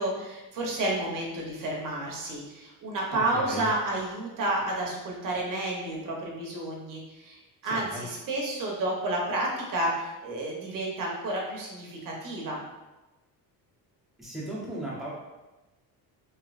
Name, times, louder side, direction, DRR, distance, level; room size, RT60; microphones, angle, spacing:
voice 1, 0.0-12.6, right 1 dB, 55° right, -2 dB, 1.0 m, -31 dB
voice 2, 3.1-3.7 7.6-8.0 14.2-15.1, right 1 dB, ahead, -8 dB, 0.9 m, -37 dB
3.1 x 3.0 x 2.5 m, 1.1 s
cardioid pair, 135°, 39 cm